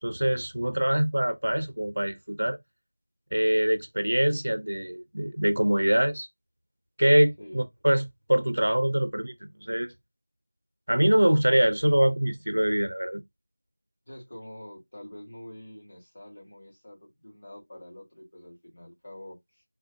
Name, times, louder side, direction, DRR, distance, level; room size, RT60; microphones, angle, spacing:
voice 1, 0.0-2.6 3.3-6.3 7.0-9.9 10.9-13.2, right 1 dB, 80° right, 0.7 m, -24 dB
voice 2, 14.1-19.6, left 1 dB, 25° left, 1.7 m, -46 dB
4.1 x 2.3 x 2.7 m
figure-of-eight pair, 180°, 0 cm